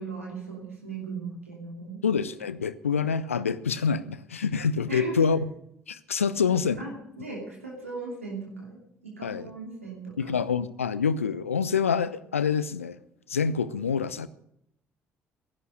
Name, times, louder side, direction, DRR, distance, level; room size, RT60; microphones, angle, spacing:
voice 1, 0.0-2.0 4.9-5.3 6.8-10.3, right 3 dB, 85° right, 2.8 m, -38 dB
voice 2, 2.0-5.5 5.9-6.8 9.2-9.5 10.2-13.0 13.3-14.3, left 6 dB, 85° left, 0.6 m, -26 dB
15.5 x 11.0 x 6.5 m
figure-of-eight pair, 45°, 7 cm